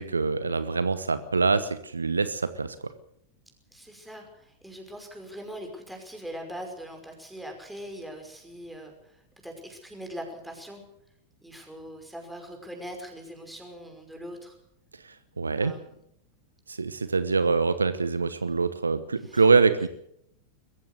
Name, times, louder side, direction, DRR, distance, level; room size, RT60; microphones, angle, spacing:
voice 1, 0.0-2.7 15.4-15.7 16.7-19.9, right 4 dB, 75° right, 13 dB, 1.1 m, -24 dB
voice 2, 3.7-10.8 11.4-14.6 15.6-16.0 19.2-19.4, equal, ahead, 3 dB, 5.6 m, -41 dB
22.0 x 15.0 x 8.1 m, 0.73 s
figure-of-eight pair, 90°, 0 cm